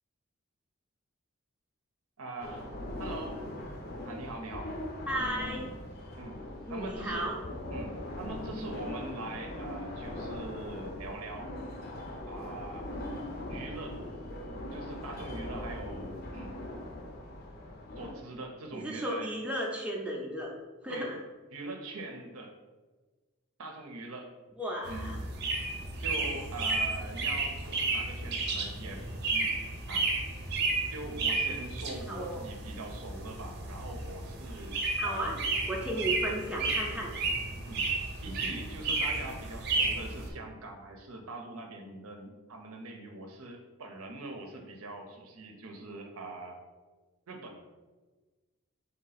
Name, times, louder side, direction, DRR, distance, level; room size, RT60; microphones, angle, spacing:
voice 1, 2.2-2.6 3.0-3.5 4.1-4.8 6.2-7.3 7.7-11.6 12.3-12.9 13.5-14.0 14.7-16.5 18.0-19.4 20.9-21.1 21.5-22.5 23.6-24.3 24.9-25.1 26.0-29.5 29.9-30.1 30.9-35.3 37.7-37.9 38.2-46.6 47.3-47.7, right 2 dB, 90° right, 3 dB, 0.6 m, -42 dB
sound 1, 2.4-18.1, left 1 dB, 45° left, 0.5 m, -40 dB
voice 2, 5.1-5.6 6.7-7.4 18.7-20.5 20.8-21.2 24.6-25.2 32.1-32.4 35.0-35.4 35.7-37.1, equal, 5° right, -2 dB, 0.4 m, -34 dB
sound 2, 24.8-40.3, right 3 dB, 50° right, 0.6 m, -33 dB
3.6 x 2.8 x 3.9 m, 1.3 s
head